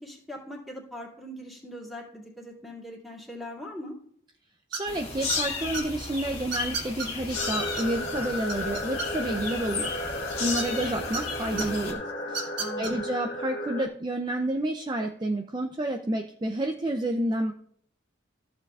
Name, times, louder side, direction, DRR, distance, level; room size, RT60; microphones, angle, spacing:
voice 1, 0.0-4.0 12.6-13.0, equal, ahead, -5 dB, 2.3 m, -41 dB
voice 2, 4.7-9.9 10.4-12.0 12.3-12.5 12.8-17.5, right 1 dB, 20° right, 4 dB, 0.4 m, -30 dB
sound 1, 4.7-5.0 5.3-5.8 6.5-7.1 7.4-7.5 7.8-7.9 8.2-9.4 10.6-11.2 11.6-11.7 12.3-12.9, right 4 dB, 75° right, 1.5 m, -32 dB
sound 2, 4.9-11.9, left 4 dB, 30° left, 2.1 m, -34 dB
sound 3, 7.3-13.9, left 1 dB, 65° left, 1.5 m, -34 dB
14.5 x 7.7 x 2.4 m, 0.63 s
head